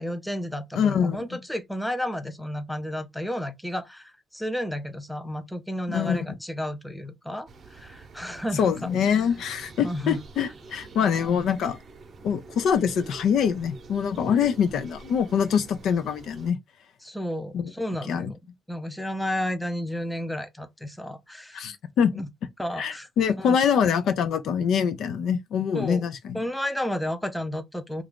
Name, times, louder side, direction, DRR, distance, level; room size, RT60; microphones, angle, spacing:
voice 1, 0.0-8.9 9.8-10.2 11.0-11.4 17.0-18.4 18.7-21.7 22.2-22.3 22.6-23.1 23.4-23.6 25.7-26.1 26.3-28.0, equal, 5° left, 0.5 m, -32 dB
voice 2, 0.7-1.3 5.9-6.3 8.5-11.8 12.2-16.6 17.5-17.7 18.1-18.3 21.5-22.1 22.8-26.4, left 7 dB, 75° left, 0.4 m, -24 dB
sound 1, 7.5-16.5, right 3 dB, 50° right, 0.7 m, -46 dB
2.4 x 2.3 x 3.5 m
cardioid pair, 90°, 0 cm